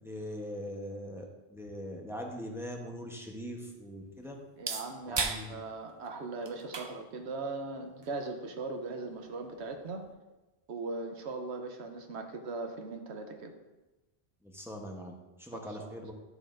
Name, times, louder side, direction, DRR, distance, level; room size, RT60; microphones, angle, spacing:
voice 1, 0.0-4.3 5.1-5.5 14.4-16.1, equal, 5° right, 1 dB, 0.8 m, -41 dB
sound 1, 2.7-10.1, right 4 dB, 40° right, 0.4 m, -42 dB
voice 2, 4.6-10.0 10.7-13.5 15.5-15.9, right 3 dB, 80° right, 5 dB, 1.1 m, -39 dB
10.5 x 6.6 x 2.5 m, 1.1 s
omnidirectional pair, 1.1 m